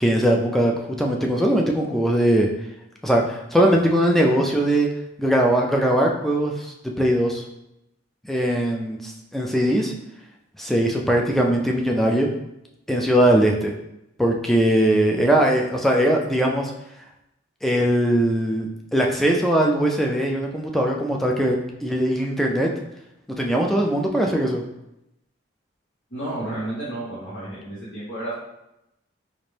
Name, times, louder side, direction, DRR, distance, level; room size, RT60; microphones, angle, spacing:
voice 1, 0.0-2.5 3.0-4.9 5.2-7.4 8.3-9.9 10.6-12.3 12.9-13.7 14.2-16.7 17.6-22.7 23.4-24.6, right 1 dB, ahead, 0 dB, 0.3 m, -20 dB
voice 2, 26.1-28.3, right 1 dB, 75° left, -11 dB, 1.3 m, -31 dB
3.9 x 2.5 x 3.2 m, 0.87 s
head